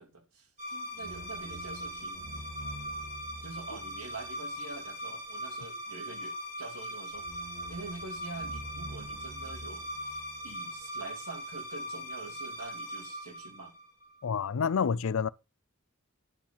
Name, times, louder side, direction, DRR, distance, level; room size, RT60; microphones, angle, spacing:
voice 1, 0.0-2.5 3.4-7.3 7.7-13.8, right 3 dB, 85° right, 3.2 m, -46 dB
sound 1, 0.6-14.2, equal, 30° right, 2.7 m, -40 dB
voice 2, 14.2-15.3, left 6 dB, 65° left, 0.5 m, -28 dB
11.0 x 5.0 x 5.5 m
head